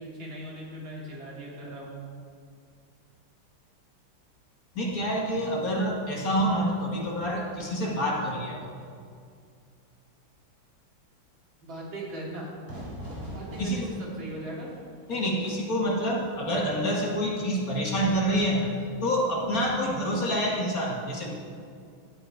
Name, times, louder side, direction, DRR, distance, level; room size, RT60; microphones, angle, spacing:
voice 1, 0.0-2.0 11.6-12.5 13.3-14.7, right 1 dB, 75° right, -5 dB, 3.1 m, -39 dB
voice 2, 4.7-8.7 13.6-13.9 15.1-18.7 19.0-21.3, equal, 50° left, -2 dB, 1.7 m, -27 dB
Fire / Fireworks, 12.7-18.2, equal, 30° right, 3.3 m, -44 dB
12.0 x 8.5 x 4.6 m, 2.3 s
omnidirectional pair, 2.2 m